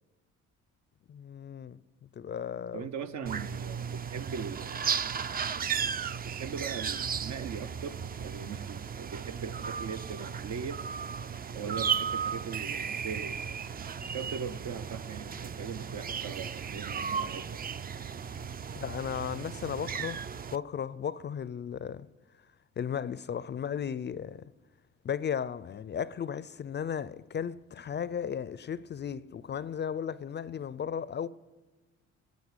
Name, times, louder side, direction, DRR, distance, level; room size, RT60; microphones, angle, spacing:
voice 1, 1.1-2.9 3.2-3.4 18.8-22.1 22.8-24.5 25.0-31.3, left 8 dB, 35° left, 0.4 m, -35 dB
voice 2, 2.7-4.9 6.2-10.8 11.5-13.4 13.7-17.6 18.7-18.8, right 6 dB, 65° right, 0.8 m, -40 dB
sound 1, 3.3-20.6, right 7 dB, 30° right, 0.4 m, -35 dB
sound 2, 11.2-21.0, right 3 dB, 45° right, 1.7 m, -54 dB
10.5 x 8.3 x 9.7 m
cardioid pair, 90°, 30 cm